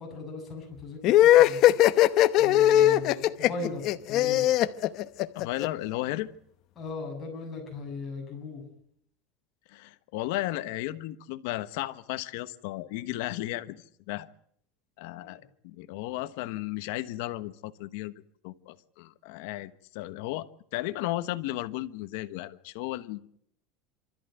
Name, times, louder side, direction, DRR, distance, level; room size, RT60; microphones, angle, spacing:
voice 1, 0.0-1.7 2.4-4.5 6.8-8.6 15.2-15.4, left 3 dB, 15° left, 0 dB, 7.4 m, -38 dB
sound 1, 1.0-5.7, left 13 dB, 35° left, 0.9 m, -20 dB
voice 2, 5.3-6.3 9.7-14.3 15.0-18.1 18.4-20.5 20.7-23.3, left 16 dB, 60° left, 12 dB, 1.2 m, -34 dB
28.0 x 14.0 x 9.2 m, 0.67 s
supercardioid pair, 175°, 0 cm